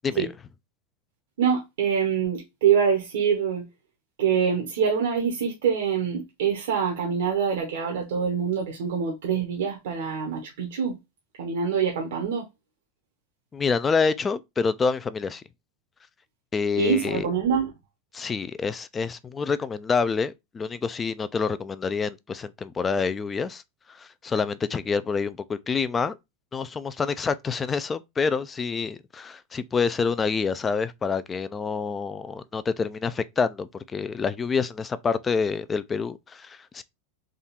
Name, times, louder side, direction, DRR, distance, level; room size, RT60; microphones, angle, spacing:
voice 1, 1.4-3.7 4.2-11.0 11.4-12.5 16.8-17.7, right 7 dB, 85° right, 1.0 m, -25 dB
voice 2, 13.5-15.4 16.5-17.3 18.1-23.6 23.9-26.2 26.5-36.8, left 5 dB, 20° left, 0.3 m, -27 dB
3.6 x 2.3 x 4.1 m
supercardioid pair, 135°, 0 cm